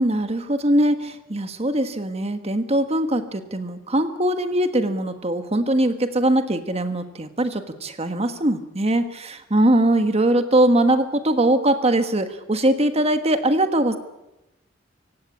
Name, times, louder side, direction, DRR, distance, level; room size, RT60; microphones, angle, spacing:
voice 1, 0.0-14.0, right 1 dB, 30° right, 9 dB, 1.4 m, -21 dB
26.5 x 16.5 x 8.5 m, 0.95 s
head